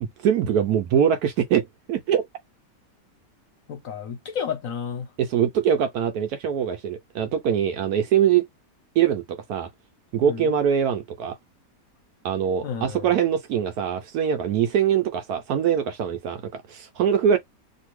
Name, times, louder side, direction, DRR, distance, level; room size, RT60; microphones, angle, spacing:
voice 1, 0.0-2.3 5.2-8.5 9.0-9.7 10.1-11.4 12.2-17.4, right 8 dB, 70° right, 1.0 m, -23 dB
voice 2, 3.7-5.1 10.2-10.5 12.6-13.1, left 7 dB, 60° left, 1.1 m, -31 dB
2.8 x 2.6 x 3.0 m
omnidirectional pair, 1.8 m